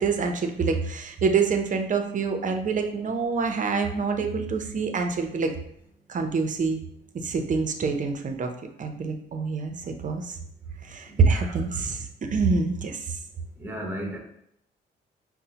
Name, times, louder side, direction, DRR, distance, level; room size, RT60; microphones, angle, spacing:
voice 1, 0.0-5.5 6.1-6.8 7.1-8.5 8.8-10.3 10.8-13.2, right 5 dB, 40° right, 5 dB, 0.6 m, -26 dB
voice 2, 13.6-14.2, equal, 10° right, 1 dB, 0.9 m, -34 dB
5.2 x 2.1 x 2.8 m, 0.72 s
cardioid pair, 90°, 20 cm